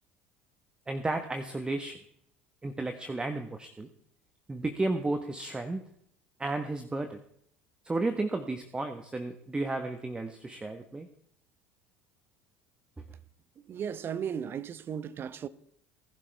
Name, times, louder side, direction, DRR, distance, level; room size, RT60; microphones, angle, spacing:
voice 1, 0.9-2.0 2.6-3.9 4.5-5.8 6.4-7.2 7.8-11.1, right 2 dB, 15° right, 1.3 m, -33 dB
voice 2, 13.7-15.5, right 8 dB, 40° right, 0.9 m, -35 dB
19.5 x 11.5 x 3.5 m
hypercardioid pair, 70°, 6 cm